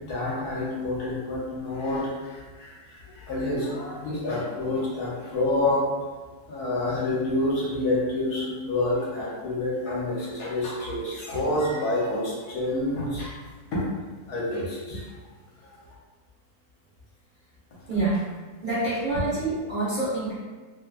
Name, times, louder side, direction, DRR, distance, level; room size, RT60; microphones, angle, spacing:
voice 1, 0.0-5.8 6.5-13.3 13.7-13.8 14.3-15.0 15.6-15.8, left 2 dB, 70° left, -6 dB, 1.3 m, -28 dB
voice 2, 17.9-18.3 18.6-20.4, right 2 dB, 75° right, -11 dB, 0.4 m, -27 dB
2.9 x 2.1 x 2.3 m, 1.4 s
omnidirectional pair, 1.8 m